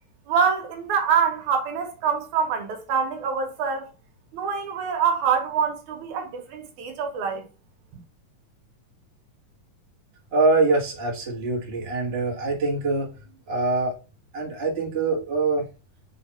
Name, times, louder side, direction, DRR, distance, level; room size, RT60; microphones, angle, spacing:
voice 1, 0.3-3.9 4.3-7.4, right 6 dB, 75° right, 2.4 m, -25 dB
voice 2, 10.3-13.1 13.5-13.9 14.3-15.6, right 3 dB, 25° right, 1.5 m, -24 dB
6.1 x 4.0 x 4.1 m
omnidirectional pair, 3.5 m